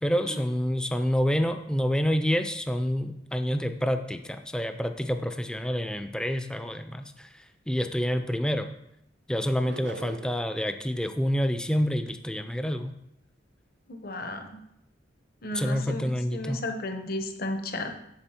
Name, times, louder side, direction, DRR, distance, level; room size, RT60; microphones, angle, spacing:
voice 1, 0.0-8.7 9.3-12.9 15.5-16.6, equal, 5° left, 8 dB, 0.5 m, -28 dB
sound 1, 9.6-10.6, right 4 dB, 65° right, 0.4 m, -42 dB
voice 2, 13.9-14.6 15.4-17.9, left 1 dB, 55° left, 6 dB, 1.0 m, -34 dB
8.9 x 7.0 x 4.4 m, 0.81 s
head